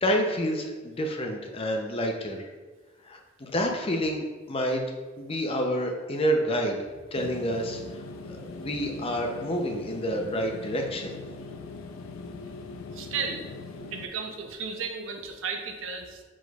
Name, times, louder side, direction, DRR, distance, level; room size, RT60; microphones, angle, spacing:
voice 1, 0.0-2.4 3.1-4.8 5.2-6.8 7.1-7.8 8.3-11.2, equal, 30° left, 2 dB, 0.5 m, -28 dB
sound 1, 7.1-14.1, left 3 dB, 90° left, 0.4 m, -41 dB
voice 2, 12.9-13.5 13.9-16.2, right 5 dB, 70° right, 5 dB, 0.5 m, -34 dB
4.8 x 4.1 x 2.3 m, 1.2 s
head